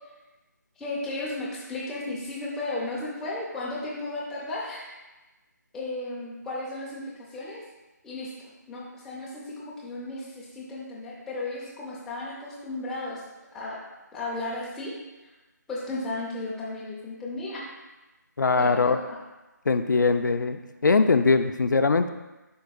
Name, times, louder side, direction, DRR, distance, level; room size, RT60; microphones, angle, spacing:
voice 1, 0.8-4.9 5.7-7.6 8.0-8.3 8.7-13.2 13.5-13.8 14.1-14.9 15.7-17.6 18.6-19.2, left 2 dB, 5° left, -6 dB, 0.5 m, -34 dB
voice 2, 18.4-19.0 19.7-22.1, left 4 dB, 75° left, 9 dB, 0.5 m, -21 dB
10.5 x 4.7 x 2.3 m, 1.1 s
figure-of-eight pair, 165°, 10 cm